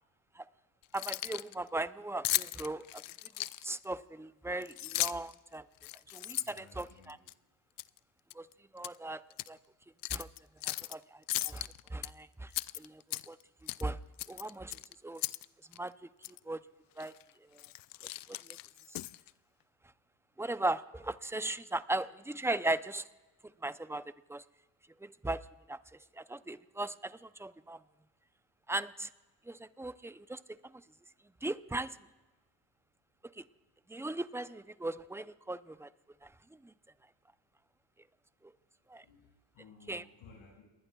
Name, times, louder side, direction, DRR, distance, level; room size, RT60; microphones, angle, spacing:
Keys jangling, 0.8-1.5 2.2-3.8 4.6-5.3 5.8-7.3 7.8-8.0 8.3-9.0 9.3-9.5 10.0-10.9 11.3-12.1 12.5-13.4 13.7-13.9 14.2-15.5 15.7-15.8 16.2-16.4 17.0-17.2 17.6-19.3, left 16 dB, 50° left, 0.5 m, -37 dB
voice 1, 0.9-3.0 3.6-5.6 6.1-7.2 8.3-8.5 8.7-9.2 9.5-9.6 10.1-10.3 10.6-12.5 12.8-13.4 13.8-14.0 14.3-15.2 15.7-16.6 17.0-17.1 17.5-17.6 18.3-18.6 20.4-23.1 23.6-24.0 24.3-24.4 25.0-25.8 26.1-27.8 28.7-29.1 29.5-30.4 31.4-32.0 33.3-33.4 33.9-35.9 36.2-36.3 36.6-36.7 38.4-38.5 38.9-39.0 39.9-40.0, right 2 dB, 5° right, 13 dB, 0.6 m, -38 dB
voice 2, 6.4-7.2 39.0-40.6, left 4 dB, 75° left, -3 dB, 6.2 m, -58 dB
30.0 x 20.5 x 2.4 m, 1.1 s
supercardioid pair, 80°, 45 cm